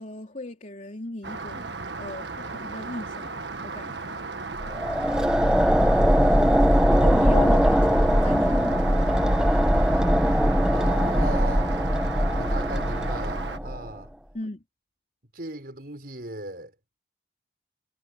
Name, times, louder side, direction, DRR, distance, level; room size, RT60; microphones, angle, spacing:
voice 1, 0.0-4.2 7.0-9.3 14.3-14.6, left 1 dB, 40° left, 3.5 m, -36 dB
Rain, 1.2-13.6, right 3 dB, 75° right, 1.6 m, -35 dB
sound 1, 4.6-13.9, equal, 5° right, 1.2 m, -21 dB
voice 2, 5.9-7.1 10.7-11.8 12.3-14.1 15.3-16.7, right 1 dB, 55° right, 6.0 m, -37 dB
head